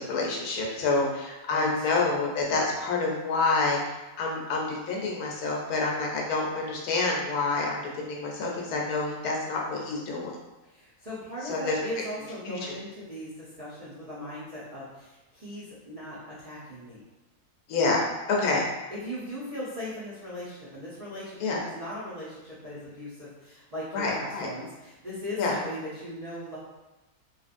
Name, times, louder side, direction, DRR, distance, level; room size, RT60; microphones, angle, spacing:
voice 1, 0.0-3.8 4.2-10.3 11.5-11.8 12.4-12.7 17.7-18.7 21.4-21.6 23.9-24.5 25.4-25.5, left 3 dB, 75° left, -2 dB, 1.1 m, -28 dB
voice 2, 1.5-1.9 10.6-17.0 18.9-26.6, equal, 55° right, -10 dB, 0.4 m, -38 dB
2.9 x 2.4 x 2.5 m, 1.1 s
omnidirectional pair, 1.6 m